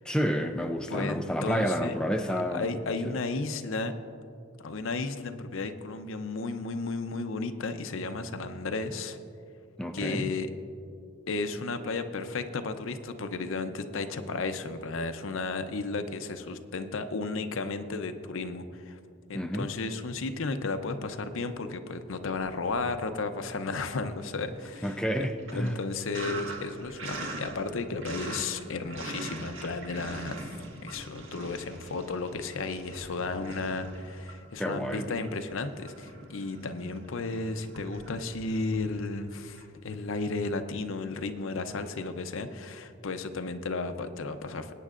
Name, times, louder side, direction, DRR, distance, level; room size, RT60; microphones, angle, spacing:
voice 1, 0.0-2.7 9.8-10.3 19.3-19.6 24.8-25.8 34.6-35.2, equal, 5° left, 4 dB, 0.4 m, -30 dB
voice 2, 0.9-1.9 2.3-3.9 4.6-9.2 9.9-10.5 11.3-19.0 19.3-44.7, left 3 dB, 70° left, 8 dB, 0.6 m, -34 dB
Sink (filling or washing), 22.4-23.2 23.5-39.6, right 2 dB, 65° right, 1.5 m, -43 dB
21.5 x 9.3 x 2.5 m, 2.5 s
head